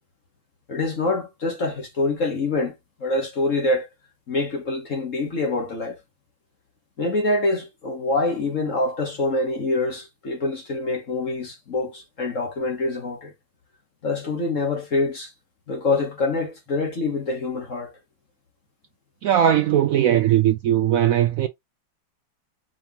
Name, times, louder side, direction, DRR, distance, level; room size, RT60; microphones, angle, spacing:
voice 1, 0.7-2.7 3.0-3.9 4.3-6.0 7.0-13.3 14.0-15.3 15.7-17.9, left 2 dB, 45° left, 1.5 m, -25 dB
voice 2, 19.2-21.5, right 11 dB, 80° right, 0.7 m, -19 dB
4.9 x 3.7 x 2.8 m
omnidirectional pair, 2.0 m